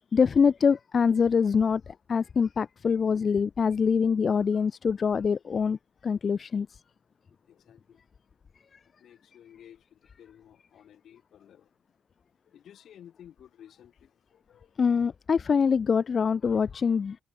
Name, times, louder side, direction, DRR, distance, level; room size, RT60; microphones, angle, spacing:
voice 1, 0.1-1.8 2.1-5.8 6.0-6.7 14.8-17.2, left 6 dB, 45° left, 0.4 m, -24 dB
voice 2, 7.5-8.0 9.0-11.7 12.5-15.0, left 10 dB, 65° left, 4.4 m, -54 dB
cardioid pair, 90°, 0 cm